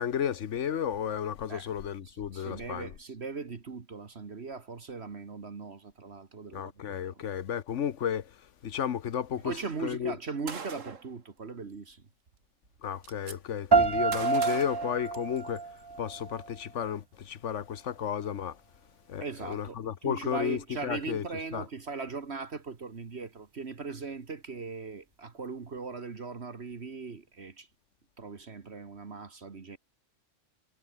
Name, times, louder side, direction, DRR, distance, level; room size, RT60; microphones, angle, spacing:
voice 1, 0.0-2.9 6.5-8.3 8.6-9.5 9.8-10.1 12.8-15.7 16.0-18.6 19.1-21.2 21.5-21.6, left 9 dB, 70° left, 1.3 m, -33 dB
voice 2, 2.1-7.2 9.4-12.1 19.2-27.7 28.2-29.8, right 4 dB, 55° right, 1.9 m, -39 dB
Gunshot gunfire, 10.5-11.1 12.3-12.4 12.6-13.4 14.1-15.6, right 5 dB, 85° right, 2.1 m, -41 dB
sound 1, 13.7-16.7, right 4 dB, 30° right, 0.5 m, -28 dB
omnidirectional pair, 1.3 m